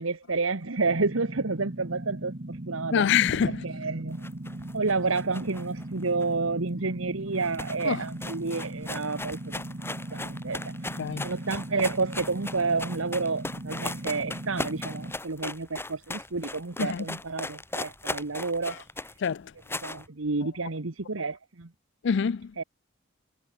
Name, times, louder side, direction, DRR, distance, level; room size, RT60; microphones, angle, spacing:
voice 1, 0.0-2.3 2.6-3.0 3.5-4.2 4.7-9.6 10.1-10.6 11.2-18.8 19.8-21.7 22.6-22.7, right 3 dB, 85° right, 1.4 m, -30 dB
sound 1, 0.8-15.1, right 1 dB, 40° right, 1.5 m, -38 dB
voice 2, 2.9-3.7 7.8-8.0 11.0-11.3 16.8-17.1 19.2-19.5 22.0-22.5, left 7 dB, 65° left, 0.4 m, -25 dB
sound 2, 4.1-6.8 7.0-7.1 7.3-20.1, left 2 dB, 10° left, 3.0 m, -38 dB
head